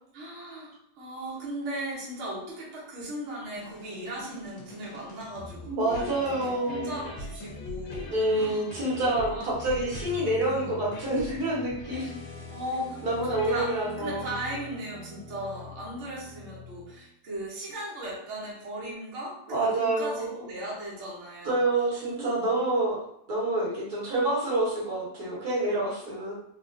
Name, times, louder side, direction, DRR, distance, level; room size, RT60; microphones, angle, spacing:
voice 1, 0.1-8.7 9.1-9.5 10.4-10.7 12.5-13.7 14.0-21.6 22.0-22.5, right 1 dB, 50° right, -5 dB, 1.1 m, -37 dB
sound 1, 3.6-17.0, left 1 dB, 70° left, 1.1 m, -42 dB
voice 2, 5.7-6.9 8.1-12.1 13.0-14.3 19.5-20.3 21.4-23.0 23.3-26.3, right 2 dB, 75° right, -7 dB, 1.7 m, -27 dB
3.4 x 2.4 x 2.5 m, 0.72 s
omnidirectional pair, 1.7 m